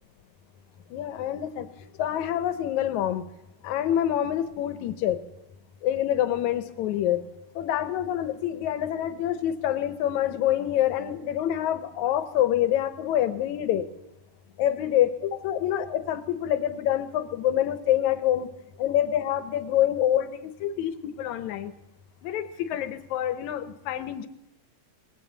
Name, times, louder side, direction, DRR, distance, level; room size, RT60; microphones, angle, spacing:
voice 1, 0.9-1.7 2.0-3.2 3.6-5.2 5.8-7.2 7.6-13.9 14.6-18.5 18.8-21.7 22.2-24.3, left 11 dB, 80° left, 11 dB, 2.3 m, -26 dB
19.5 x 16.0 x 4.0 m, 0.88 s
omnidirectional pair, 3.3 m